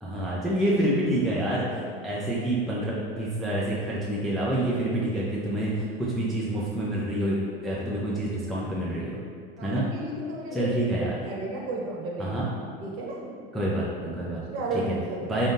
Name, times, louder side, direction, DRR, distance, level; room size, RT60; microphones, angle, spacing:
voice 1, 0.0-9.2 9.6-9.9 10.5-11.2 12.2-12.5 13.5-14.4 14.7-15.0 15.2-15.5, right 1 dB, ahead, -7 dB, 0.5 m, -27 dB
voice 2, 1.8-2.2 7.8-8.0 9.6-10.7 11.0-12.4 12.8-13.3 14.5-15.5, right 2 dB, 45° right, -3 dB, 1.0 m, -34 dB
4.1 x 3.4 x 2.6 m, 2.3 s
hypercardioid pair, 100°, 31 cm